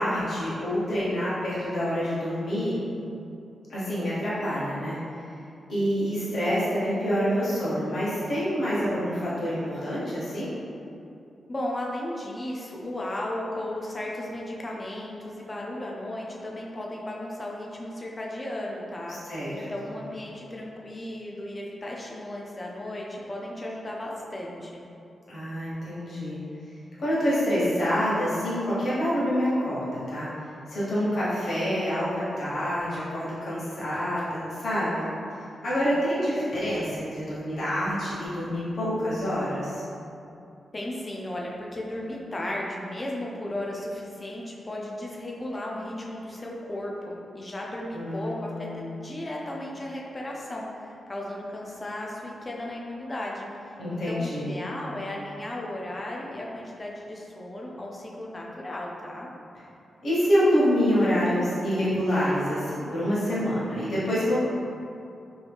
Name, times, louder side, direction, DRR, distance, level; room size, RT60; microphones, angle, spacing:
voice 1, 0.0-2.8 3.7-5.0 5.7-10.5 19.3-19.9 25.3-26.4 27.0-30.3 30.7-35.1 35.6-39.8 47.9-48.9 53.8-54.5 60.0-64.4, equal, 45° left, -9 dB, 1.0 m, -27 dB
voice 2, 11.5-19.2 19.5-24.8 40.7-59.3, left 1 dB, 20° left, -3 dB, 0.4 m, -35 dB
2.7 x 2.6 x 3.4 m, 2.7 s
wide cardioid pair, 170°, 0 cm